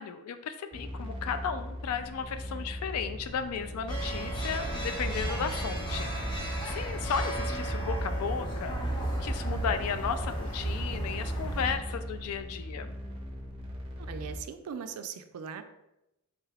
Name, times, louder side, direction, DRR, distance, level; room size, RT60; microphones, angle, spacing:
voice 1, 0.0-13.0, left 7 dB, 75° left, 10 dB, 0.3 m, -35 dB
sound 1, 0.7-14.4, equal, 25° right, 0.5 m, -40 dB
sound 2, 3.9-11.8, right 1 dB, 20° left, 0.6 m, -33 dB
voice 2, 14.0-15.6, right 7 dB, 90° right, 9 dB, 0.3 m, -39 dB
3.5 x 3.3 x 2.3 m, 0.92 s
head